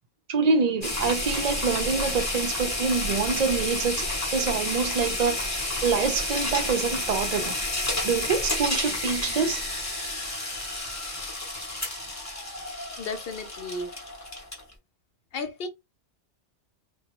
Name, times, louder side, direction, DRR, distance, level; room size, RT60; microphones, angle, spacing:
voice 1, 0.3-5.4 5.8-7.6 8.0-9.6, right 5 dB, 55° right, 0.4 m, -26 dB
sound 1, 0.8-14.7, left 1 dB, 20° left, 0.6 m, -30 dB
voice 2, 13.0-14.1 15.3-15.7, left 3 dB, 60° left, 0.8 m, -34 dB
2.2 x 2.2 x 2.9 m
omnidirectional pair, 1.2 m